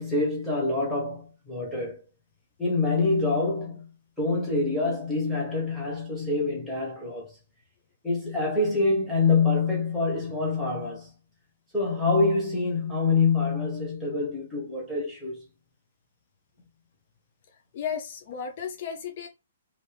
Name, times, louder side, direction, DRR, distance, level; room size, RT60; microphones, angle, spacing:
voice 1, 0.0-2.0 2.6-3.8 4.2-7.3 8.0-11.1 11.7-15.4, left 3 dB, ahead, 1.2 m, -26 dB
voice 2, 17.7-19.3, left 7 dB, 45° left, 0.4 m, -34 dB
2.7 x 2.6 x 3.2 m
hypercardioid pair, 165°, 0 cm